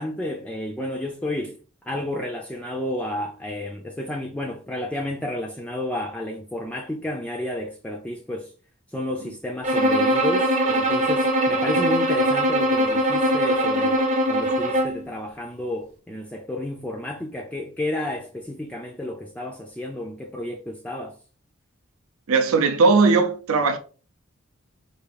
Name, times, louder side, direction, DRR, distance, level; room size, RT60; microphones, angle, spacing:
voice 1, 0.0-1.6 1.8-8.5 8.9-21.2, left 1 dB, 5° left, 0.3 m, -31 dB
Bowed string instrument, 9.6-15.1, equal, 30° right, 0.6 m, -21 dB
voice 2, 22.3-23.8, right 4 dB, 75° right, 0.5 m, -18 dB
4.7 x 2.5 x 3.3 m
head